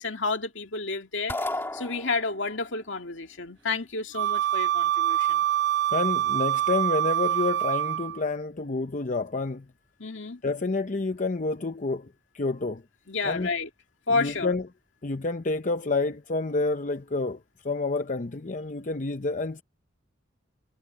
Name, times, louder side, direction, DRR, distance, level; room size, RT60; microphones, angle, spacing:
voice 1, 0.0-1.4 1.7-5.4 10.0-10.4 13.1-13.7 14.1-14.5, left 3 dB, 70° left, 2.4 m, -30 dB
sound 1, 1.3-2.6, left 1 dB, 10° left, 3.0 m, -33 dB
Wind instrument woodwind instrument, 4.1-8.2, right 12 dB, 60° right, 0.8 m, -25 dB
voice 2, 5.9-9.7 10.4-12.8 13.2-13.5 14.1-14.6 15.0-17.4 17.6-19.6, left 3 dB, 40° left, 0.7 m, -29 dB
head